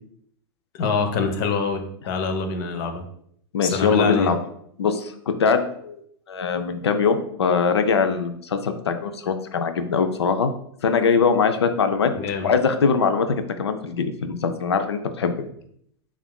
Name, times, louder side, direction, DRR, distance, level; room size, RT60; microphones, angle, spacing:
voice 1, 0.7-3.0 3.6-4.3 12.0-12.5, left 4 dB, 55° left, 6 dB, 0.8 m, -25 dB
voice 2, 3.5-4.4 4.8-6.0 6.3-10.5 10.8-12.1 12.4-15.3, left 5 dB, 85° left, 8 dB, 0.4 m, -22 dB
6.8 x 2.4 x 2.2 m, 0.69 s
hypercardioid pair, 105°, 13 cm